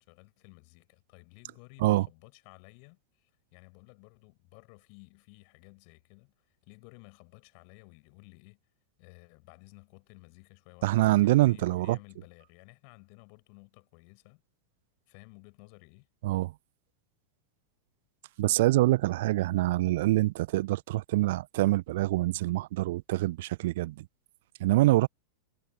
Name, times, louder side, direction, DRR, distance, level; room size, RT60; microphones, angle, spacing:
voice 1, 0.0-8.6 9.0-14.4 15.1-16.1, left 40 dB or more, 45° left, 7.2 m, -55 dB
voice 2, 10.8-12.0 16.2-16.5 18.4-24.1 24.6-25.1, right 17 dB, 55° right, 0.9 m, -25 dB
figure-of-eight pair, 90°, 0 cm